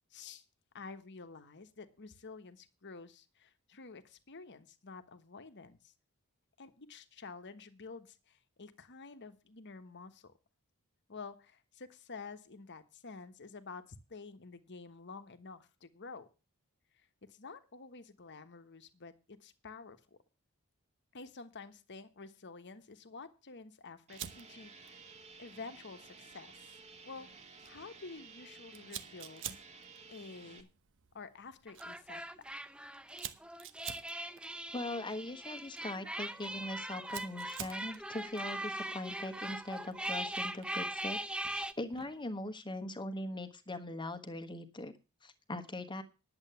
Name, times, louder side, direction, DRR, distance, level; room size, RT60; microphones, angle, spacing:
voice 1, 0.1-0.4 0.7-5.9 6.6-10.3 11.1-16.3 16.9-20.2 21.1-25.0 25.4-26.6 27.0-30.7 31.1-32.2, left 4 dB, 55° left, 10 dB, 1.2 m, -50 dB
sound 1, 24.1-30.6, right 4 dB, 30° right, 1.6 m, -54 dB
Fire, 24.1-42.3, right 10 dB, 60° right, 1.0 m, -52 dB
sound 2, 31.7-41.7, right 1 dB, 5° right, 0.5 m, -40 dB
voice 2, 34.7-41.2 41.5-44.9 45.2-46.0, left 1 dB, 20° left, 8 dB, 1.2 m, -41 dB
10.5 x 8.0 x 6.9 m, 0.31 s
head